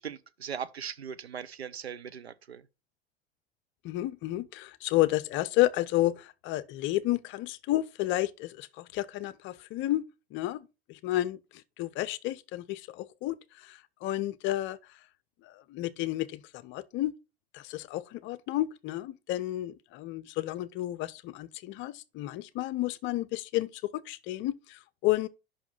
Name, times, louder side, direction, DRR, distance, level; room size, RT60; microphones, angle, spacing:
voice 1, 0.0-2.7, right 8 dB, 90° right, 0.7 m, -39 dB
voice 2, 3.8-10.1 10.3-14.8 15.4-17.1 17.5-25.3, left 16 dB, 40° left, 0.6 m, -31 dB
5.6 x 4.9 x 5.3 m
hypercardioid pair, 90°, 31 cm